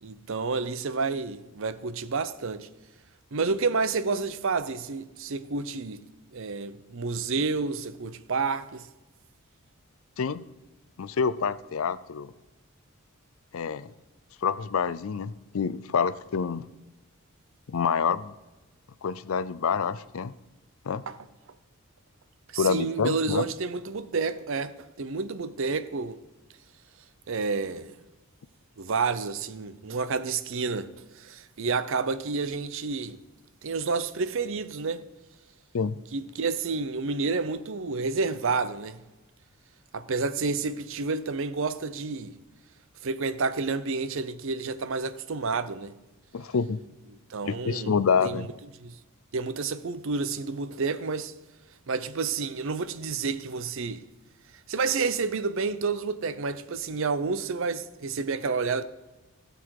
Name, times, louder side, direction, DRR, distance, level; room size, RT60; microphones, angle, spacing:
voice 1, 0.0-2.7 3.3-6.0 6.3-8.9 21.1-21.2 22.5-26.2 27.3-28.0 28.8-33.2 33.6-35.1 36.1-39.0 39.9-42.3 43.0-45.9 47.1-48.5 48.8-49.0 49.3-51.3 51.9-54.1 54.7-58.8, right 4 dB, 60° right, 0.6 m, -30 dB
voice 2, 11.0-12.3 13.5-13.9 14.4-16.7 17.7-18.3 19.0-20.3 20.9-21.0 22.6-23.4 35.7-36.0 46.3-46.8 47.4-48.5, left 6 dB, 70° left, 0.5 m, -27 dB
16.0 x 6.9 x 4.7 m
head